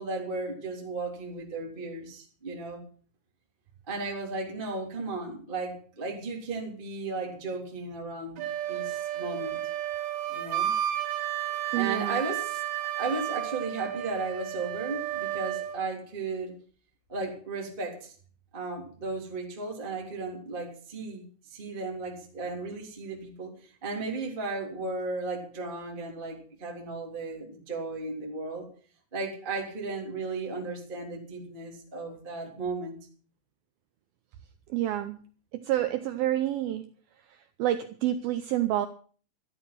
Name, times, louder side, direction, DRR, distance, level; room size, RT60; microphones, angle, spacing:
voice 1, 0.0-2.9 3.9-9.6 10.3-10.7 11.7-16.6 17.1-18.1 18.5-28.7 29.1-33.0, right 3 dB, 15° right, 0 dB, 2.7 m, -35 dB
Wind instrument woodwind instrument, 8.4-15.8, right 12 dB, 70° right, 3.6 m, -32 dB
voice 2, 11.7-12.2 34.7-35.2 35.5-36.9 37.2-38.9, right 13 dB, 85° right, 10 dB, 2.1 m, -29 dB
14.0 x 12.5 x 6.0 m, 0.42 s
omnidirectional pair, 5.3 m